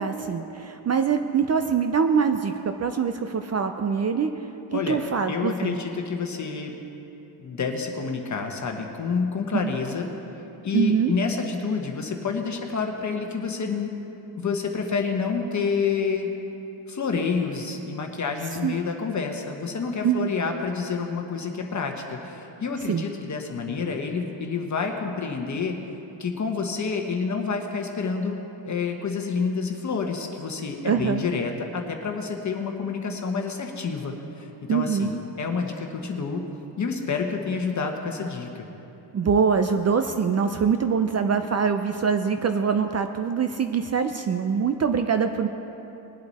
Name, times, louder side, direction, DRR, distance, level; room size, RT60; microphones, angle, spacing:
voice 1, 0.0-4.3 4.7-5.8 10.7-11.1 18.6-18.8 20.0-20.3 22.9-23.0 30.8-31.2 34.7-35.1 39.1-45.5, right 6 dB, 35° right, 7 dB, 0.5 m, -24 dB
voice 2, 4.7-5.0 5.3-6.7 7.4-10.1 10.6-13.9 14.4-16.3 16.9-25.7 26.2-28.4 28.6-36.4 36.8-38.6, left 5 dB, 35° left, 3 dB, 1.2 m, -28 dB
21.0 x 7.8 x 4.2 m, 3.0 s
cardioid pair, 105°, 49 cm